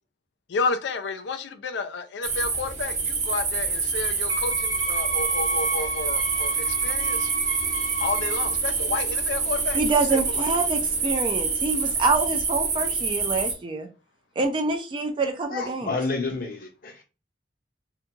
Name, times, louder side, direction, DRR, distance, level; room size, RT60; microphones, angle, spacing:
voice 1, 0.5-7.3 8.0-9.8 10.1-10.4, left 4 dB, 75° left, 0.4 m, -31 dB
sound 1, 2.2-13.5, right 4 dB, 45° right, 0.9 m, -26 dB
Wind instrument woodwind instrument, 4.3-8.6, right 3 dB, 80° right, 0.6 m, -31 dB
voice 2, 9.7-13.9 14.4-15.9, right 3 dB, 30° right, 0.4 m, -26 dB
voice 3, 15.5-17.0, left 3 dB, 55° left, 0.8 m, -30 dB
2.8 x 2.2 x 2.7 m
head